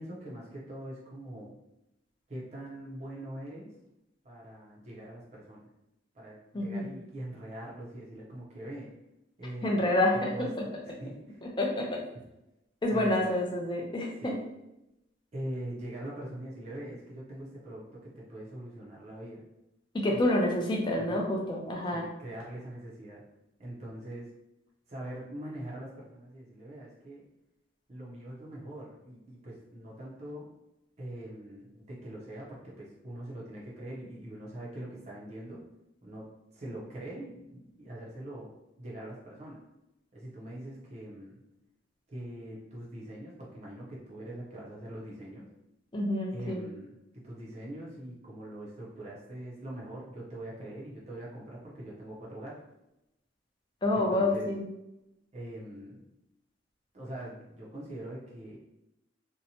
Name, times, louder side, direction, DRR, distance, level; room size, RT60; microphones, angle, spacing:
voice 1, 0.0-1.6 2.3-3.7 4.2-5.7 6.1-8.9 9.4-11.5 12.9-13.3 14.2-14.4 15.3-19.4 20.1-20.2 21.0-21.2 21.9-23.2 23.6-24.3 24.9-27.2 27.9-30.5 31.0-35.6 36.0-36.3 36.5-38.5 38.8-39.6 40.1-41.4 42.1-45.5 46.3-46.9 47.1-52.6 53.9-54.5 55.3-56.1 56.9-58.6, right 1 dB, 40° right, -5 dB, 0.6 m, -43 dB
voice 2, 6.5-6.9 9.6-10.5 11.4-12.0 12.8-14.4 19.9-22.1 45.9-46.6 53.8-54.6, left 1 dB, 25° left, -1 dB, 0.4 m, -28 dB
2.7 x 2.1 x 2.7 m, 0.88 s
head